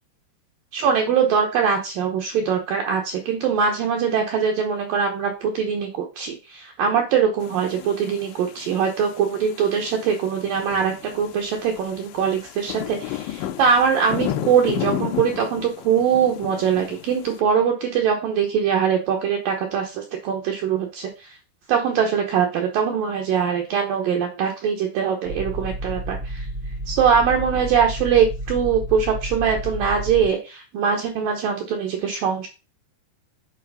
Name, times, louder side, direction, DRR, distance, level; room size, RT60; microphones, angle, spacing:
voice 1, 0.7-21.3 21.7-26.5 26.9-32.5, right 7 dB, 90° right, 2 dB, 1.9 m, -22 dB
sound 1, 7.4-17.4, left 12 dB, 80° left, 2.9 m, -33 dB
sound 2, 25.2-30.3, equal, 60° right, 1.1 m, -31 dB
8.3 x 4.3 x 5.4 m, 0.30 s
omnidirectional pair, 5.6 m